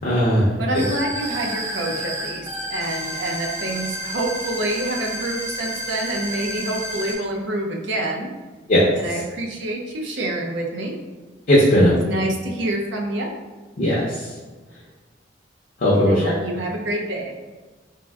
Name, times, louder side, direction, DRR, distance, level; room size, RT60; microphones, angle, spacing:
voice 1, 0.0-0.8 8.7-9.2 11.5-11.9 13.8-14.3 15.8-16.3, equal, 50° left, -7 dB, 0.5 m, -18 dB
voice 2, 0.5-8.3 9.0-11.0 11.8-13.3 15.9-17.3, right 1 dB, 75° right, 1 dB, 0.5 m, -27 dB
sound 1, 0.7-7.1, equal, 15° right, 0.5 m, -30 dB
3.4 x 2.5 x 2.2 m, 1.3 s
head